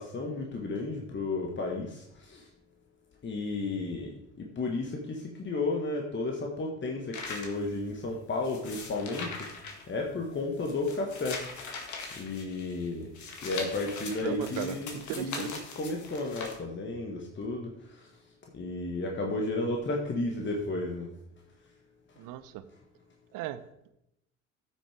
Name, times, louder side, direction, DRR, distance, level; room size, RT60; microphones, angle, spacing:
voice 1, 0.0-2.4 3.2-9.5 9.9-11.4 12.2-13.1 13.4-18.1 18.5-21.1, left 2 dB, 30° left, 1 dB, 1.6 m, -33 dB
sound 1, 7.1-16.6, left 4 dB, 50° left, 2.1 m, -41 dB
voice 2, 14.2-15.7 22.2-22.6 23.3-23.6, right 12 dB, 55° right, 12 dB, 0.8 m, -37 dB
14.5 x 6.3 x 3.5 m, 0.82 s
figure-of-eight pair, 55°, 38 cm